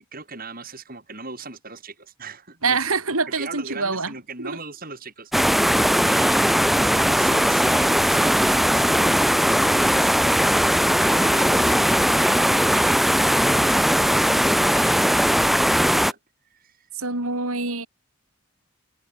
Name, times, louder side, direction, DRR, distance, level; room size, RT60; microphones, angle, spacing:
voice 1, 0.0-2.8 3.4-5.6 6.0-16.2 16.5-16.9, right 4 dB, 40° right, 6.4 m, -39 dB
voice 2, 2.6-4.1 4.4-4.6 17.0-17.9, right 4 dB, 80° right, 6.3 m, -25 dB
sound 1, 5.3-16.1, equal, ahead, 0.8 m, -19 dB
head